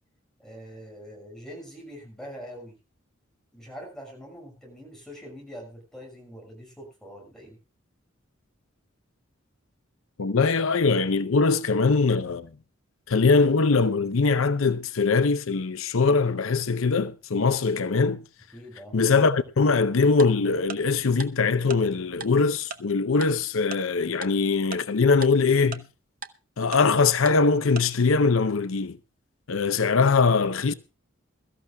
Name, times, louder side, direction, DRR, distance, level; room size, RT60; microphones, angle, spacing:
voice 1, 0.4-2.7 3.5-7.6 18.5-19.0, equal, 5° left, 6.1 m, -43 dB
voice 2, 10.2-12.5 13.1-18.2 18.9-25.9 26.6-29.0 29.5-30.7, left 4 dB, 80° left, 0.6 m, -22 dB
Tick-tock, 20.2-20.3 20.7-20.8 21.2-21.3 21.7-21.8 22.2-22.3 22.7-22.8 23.2-23.3 23.7-23.8 24.2-24.3 24.7-24.8 25.2-25.3 25.7-25.8 26.2-26.3 26.7-26.8 27.3-27.4 27.8-27.9, right 5 dB, 40° right, 0.8 m, -35 dB
22.5 x 13.5 x 2.3 m
head